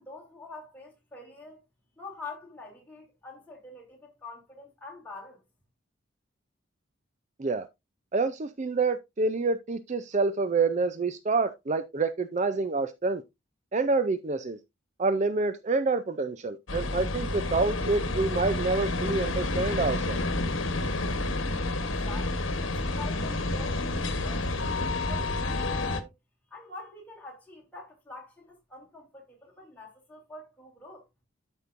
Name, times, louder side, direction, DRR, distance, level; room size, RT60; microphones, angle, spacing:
voice 1, 0.0-1.6 2.0-5.4 21.8-26.1 26.5-31.0, left 3 dB, 10° left, 2.9 m, -46 dB
voice 2, 8.1-13.2 13.7-14.6 15.0-20.2, right 3 dB, 35° right, 0.5 m, -27 dB
sound 1, 16.7-26.0, left 2 dB, 80° left, 1.1 m, -29 dB
12.5 x 5.3 x 2.5 m
head